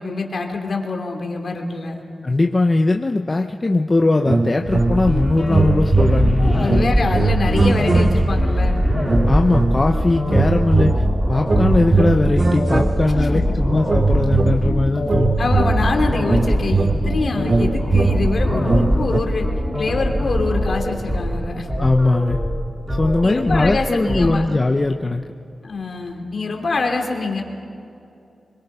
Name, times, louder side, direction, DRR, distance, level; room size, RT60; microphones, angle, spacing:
voice 1, 0.0-2.0 6.4-8.8 13.5-13.6 15.4-19.5 19.7-21.7 23.2-24.5 25.6-27.4, left 3 dB, 50° left, 2 dB, 2.9 m, -25 dB
voice 2, 2.2-6.8 9.3-15.4 21.8-22.4 22.9-25.2, left 2 dB, 25° left, 3 dB, 0.6 m, -19 dB
sound 1, 4.3-5.2 5.5-8.5 9.1-9.9 10.3-13.4 13.9-19.2, right 3 dB, 30° right, 0.4 m, -21 dB
sound 2, 4.7-24.3, equal, 15° right, 5.8 m, -22 dB
26.0 x 23.0 x 5.6 m, 2.7 s
wide cardioid pair, 175°, 0 cm